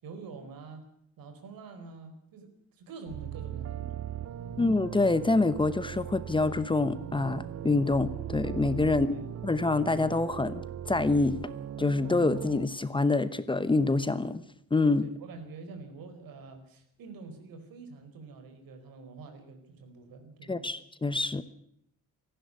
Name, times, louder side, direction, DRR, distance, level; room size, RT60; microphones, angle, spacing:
voice 1, 0.0-0.8 1.2-4.0 4.3-4.6 9.1-9.3 15.0-20.8, right 4 dB, 90° right, 8 dB, 4.6 m, -46 dB
sound 1, 3.1-12.7, right 10 dB, 50° right, 0.9 m, -39 dB
voice 2, 4.6-9.2 9.4-11.4 11.8-14.4 14.7-15.1 20.5-21.4, left 3 dB, 15° left, 14 dB, 0.9 m, -26 dB
18.0 x 15.0 x 9.6 m, 0.71 s
cardioid pair, 150°, 34 cm